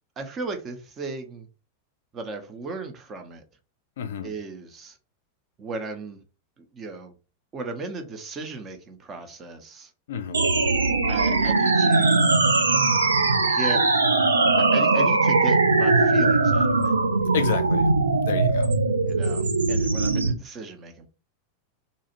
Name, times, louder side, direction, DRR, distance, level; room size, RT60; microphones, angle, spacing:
voice 1, 0.2-1.5 2.1-3.4 4.2-5.0 5.6-6.2 6.7-7.1 7.5-9.9 11.1-12.3 13.5-13.8 14.6-16.9 19.1-21.1, right 3 dB, 25° right, 0.6 m, -36 dB
voice 2, 4.0-4.3 10.1-10.4 17.3-17.8 18.3-18.7, left 7 dB, 60° left, 0.4 m, -29 dB
sound 1, 10.3-20.3, right 3 dB, 75° right, 0.4 m, -20 dB
2.6 x 2.3 x 2.9 m
figure-of-eight pair, 90°, 0 cm